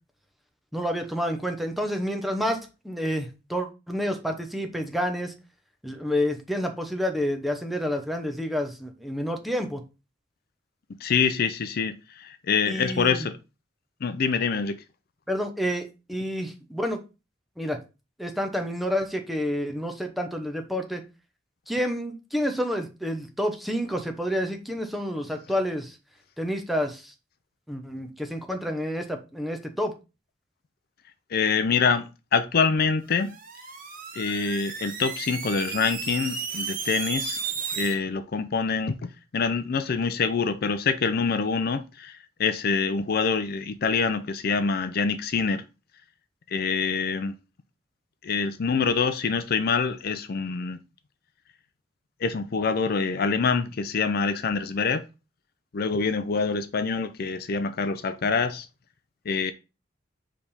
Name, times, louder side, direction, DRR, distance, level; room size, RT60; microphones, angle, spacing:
voice 1, 0.7-2.6 2.8-5.3 5.8-9.8 12.7-13.3 15.3-17.0 17.6-17.8 18.2-21.0 21.7-26.0 26.4-27.1 27.7-29.9, equal, ahead, 0.8 m, -29 dB
voice 2, 11.0-13.4 14.0-14.8 31.3-33.3 34.1-37.4 37.7-45.6 46.5-47.3 48.2-50.8 52.2-55.0 55.7-58.7 59.3-59.5, left 5 dB, 55° left, 0.5 m, -25 dB
sound 1, 33.1-38.0, right 6 dB, 45° right, 1.1 m, -33 dB
5.0 x 3.4 x 5.5 m
head